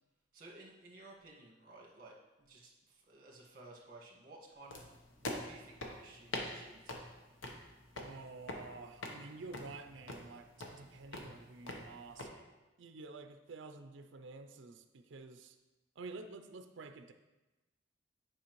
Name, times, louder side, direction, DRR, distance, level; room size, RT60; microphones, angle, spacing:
voice 1, 0.3-4.9 5.2-7.1, right 2 dB, 45° right, -2 dB, 1.5 m, -55 dB
sound 1, 4.7-12.3, left 2 dB, 80° left, 0.9 m, -45 dB
voice 2, 8.0-12.5 12.8-15.6 16.0-17.1, right 3 dB, 70° right, 7 dB, 0.5 m, -50 dB
10.0 x 5.0 x 3.0 m, 1.1 s
head